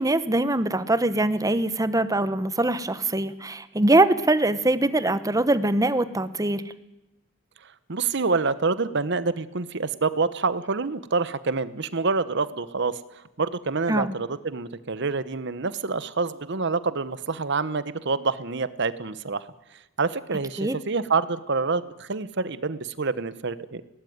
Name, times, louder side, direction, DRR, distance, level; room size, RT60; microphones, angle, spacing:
voice 1, 0.0-6.7 13.9-14.1 20.6-20.8, right 2 dB, 15° right, 13 dB, 1.1 m, -23 dB
voice 2, 7.9-19.5 20.0-23.8, right 4 dB, 60° right, 15 dB, 1.0 m, -27 dB
21.5 x 18.5 x 9.5 m, 0.94 s
head